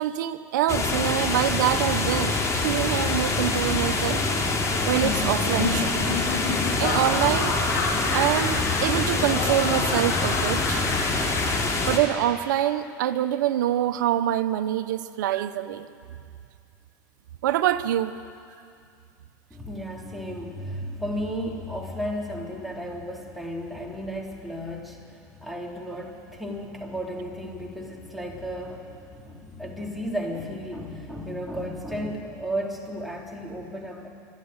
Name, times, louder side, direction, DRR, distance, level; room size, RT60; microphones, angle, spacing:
voice 1, 0.0-4.2 4.9-6.2 6.8-7.6 8.1-10.8 11.9-15.9 17.4-18.1, right 12 dB, 85° right, 11 dB, 1.0 m, -25 dB
sound 1, 0.7-12.0, left 3 dB, 30° left, 3.6 m, -25 dB
Laughter, 4.8-12.3, left 3 dB, 90° left, 5.0 m, -31 dB
voice 2, 19.5-34.1, equal, ahead, -2 dB, 3.8 m, -34 dB
25.5 x 12.0 x 9.7 m, 2.3 s
supercardioid pair, 105°, 10 cm